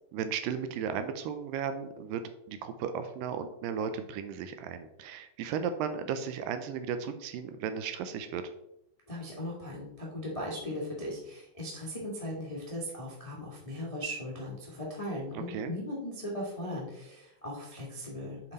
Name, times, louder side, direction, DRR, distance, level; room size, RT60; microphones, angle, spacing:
voice 1, 0.1-2.2 2.5-8.5 15.3-15.7, right 7 dB, 80° right, 9 dB, 2.2 m, -35 dB
voice 2, 9.1-18.5, left 1 dB, 65° left, -5 dB, 0.3 m, -38 dB
7.2 x 5.4 x 4.0 m, 0.82 s
omnidirectional pair, 4.1 m